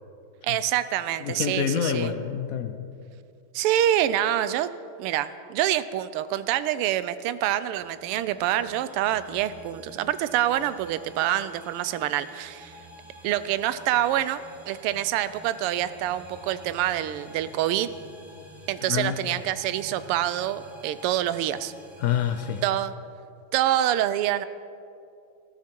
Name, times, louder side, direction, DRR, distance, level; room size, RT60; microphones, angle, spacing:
voice 1, 0.4-2.1 3.5-4.7 5.0-12.8 13.2-17.9 18.7-21.7 22.6-22.9 23.5-24.5, right 12 dB, 85° right, 14 dB, 1.5 m, -26 dB
voice 2, 1.2-2.9 18.9-19.2 22.0-22.6, left 8 dB, 90° left, 8 dB, 0.7 m, -27 dB
sound 1, 7.7-22.7, equal, 25° right, 0.5 m, -48 dB
19.5 x 13.5 x 4.5 m, 2.5 s
omnidirectional pair, 2.4 m